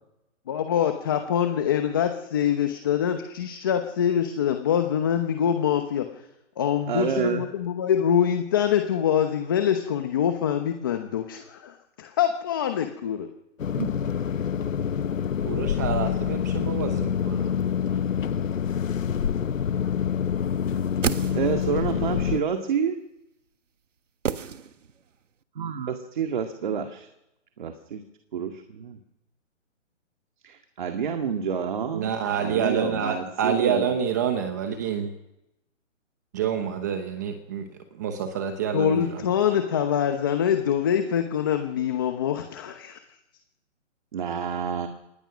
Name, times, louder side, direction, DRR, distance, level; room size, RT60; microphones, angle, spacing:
voice 1, 0.5-6.1 6.6-13.3 38.7-43.0, left 9 dB, 15° left, 7 dB, 0.9 m, -24 dB
voice 2, 6.9-7.5 13.8-13.9 16.1-16.2 21.3-23.0 25.6-27.1 27.6-28.0 28.3-29.0 30.4-32.1 32.4-33.9 44.1-44.9, right 7 dB, 40° right, 5 dB, 2.1 m, -28 dB
sound 1, 13.6-22.4, left 8 dB, 80° left, 1.1 m, -26 dB
voice 3, 15.4-17.6 31.9-35.1 36.3-37.7 37.9-39.2, right 7 dB, 15° right, 7 dB, 1.0 m, -28 dB
sound 2, 20.6-21.9 24.2-25.2 25.4-25.5, right 7 dB, 70° right, 1.6 m, -31 dB
27.0 x 20.0 x 6.2 m, 0.88 s
hypercardioid pair, 170°, 38 cm